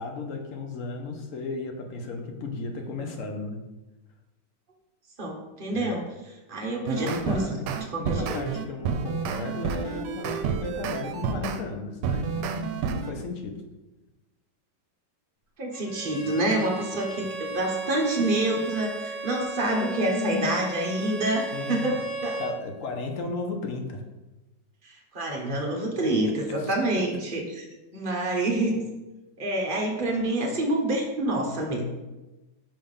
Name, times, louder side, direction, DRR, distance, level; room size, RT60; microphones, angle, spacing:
voice 1, 0.0-3.6 5.7-6.0 6.8-7.7 8.0-13.6 16.5-16.6 19.6-20.5 21.0-21.2 21.5-22.0 22.4-24.0 26.6-26.8, left 3 dB, 60° left, 3 dB, 1.0 m, -34 dB
voice 2, 5.2-6.0 6.5-7.4 7.9-8.4 15.6-21.4 21.7-22.4 24.8-27.6 27.9-28.8 29.4-31.8, right 1 dB, 40° right, 0 dB, 0.8 m, -27 dB
sound 1, 6.6-11.6 12.0-13.1, right 6 dB, 80° right, 1.2 m, -30 dB
Bowed string instrument, 15.7-22.6, right 3 dB, 85° left, 2.2 m, -36 dB
5.5 x 3.4 x 5.4 m, 1.1 s
omnidirectional pair, 1.9 m